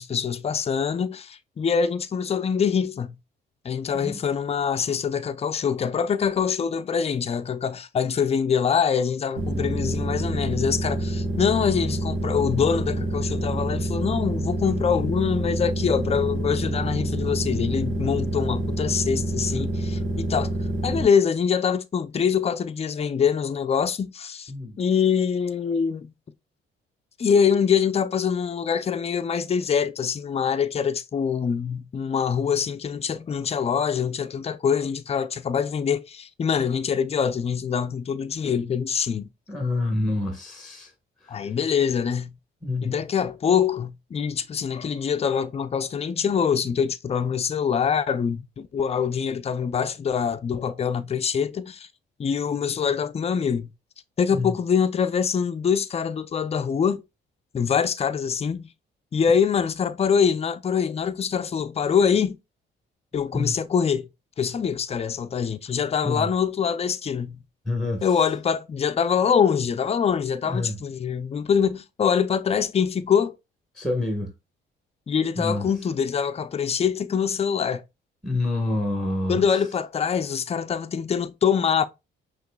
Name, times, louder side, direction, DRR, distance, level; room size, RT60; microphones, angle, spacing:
voice 1, 0.0-3.2 3.6-20.5 20.8-24.5 24.8-26.1 27.2-39.3 41.3-42.3 42.8-51.9 52.2-53.7 54.2-57.0 57.5-58.7 59.1-62.4 63.1-64.1 64.4-67.4 68.0-73.3 75.1-77.8 79.3-81.9, left 7 dB, 30° left, 0.4 m, -24 dB
sound 1, 9.4-21.0, right 1 dB, 90° right, 1.3 m, -27 dB
voice 2, 39.5-40.9 41.2-41.4 42.6-42.9 54.3-54.5 63.3-63.6 66.0-66.3 67.6-68.0 70.4-70.8 73.7-74.3 75.3-75.6 78.2-79.4, left 2 dB, ahead, 1.2 m, -27 dB
5.8 x 3.0 x 2.2 m
cardioid pair, 90°, 20 cm